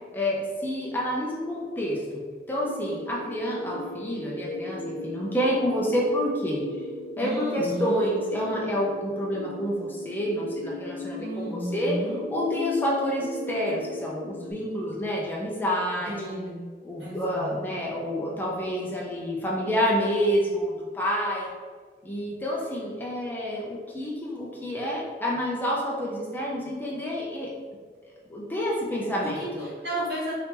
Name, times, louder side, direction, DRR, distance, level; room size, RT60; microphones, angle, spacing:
voice 1, 0.1-2.2 2.5-6.6 7.2-11.9 12.3-16.1 16.8-21.5 22.0-27.5 28.3-29.7, equal, 10° left, -4 dB, 0.5 m, -28 dB
sound 1, 2.6-14.5, left 1 dB, 85° left, 0.3 m, -37 dB
voice 2, 7.2-8.0 11.2-12.2 16.1-16.6 17.0-17.6 29.2-30.4, equal, 75° right, -6 dB, 1.0 m, -33 dB
2.8 x 2.7 x 3.5 m, 1.5 s
head